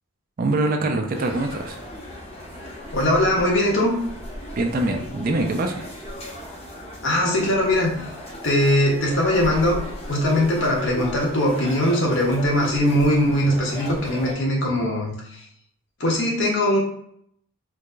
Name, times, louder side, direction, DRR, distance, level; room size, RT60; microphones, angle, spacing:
voice 1, 0.4-1.8 4.6-5.9, right 2 dB, 40° right, 4 dB, 0.4 m, -24 dB
sound 1, 1.1-14.3, left 1 dB, 25° left, 0.7 m, -36 dB
voice 2, 2.9-3.9 7.0-8.0 8.4-9.8 10.1-15.4 16.0-16.8, left 1 dB, 55° left, -2 dB, 1.0 m, -21 dB
4.6 x 2.2 x 2.5 m, 0.67 s
head